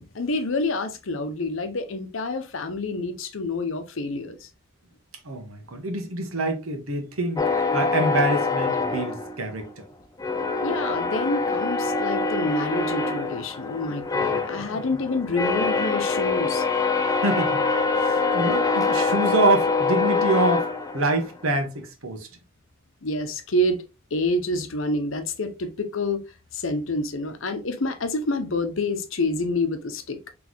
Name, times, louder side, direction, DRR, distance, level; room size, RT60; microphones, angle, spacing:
voice 1, 0.0-4.5 10.6-16.6 23.0-23.8 24.1-26.2 26.5-30.2, left 2 dB, 65° left, 0.7 m, -27 dB
voice 2, 5.2-9.8 14.1-14.3 14.7-14.8 17.2-17.6 18.0-22.3, right 2 dB, 90° right, 1.1 m, -26 dB
sound 1, 7.4-9.8 10.2-21.4, left 4 dB, 15° left, 0.4 m, -25 dB
4.1 x 3.3 x 3.0 m
head